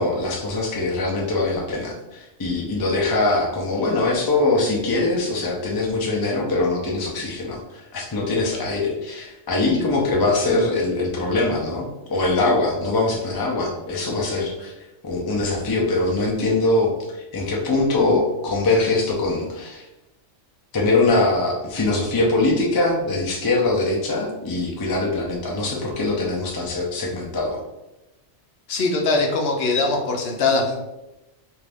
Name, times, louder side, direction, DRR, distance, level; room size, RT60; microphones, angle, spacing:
voice 1, 0.0-14.7 15.0-19.9 20.7-27.6, left 2 dB, 35° left, -1 dB, 0.3 m, -22 dB
voice 2, 28.7-30.8, left 3 dB, 65° left, 1 dB, 0.8 m, -21 dB
2.6 x 2.5 x 3.3 m, 0.96 s
omnidirectional pair, 1.2 m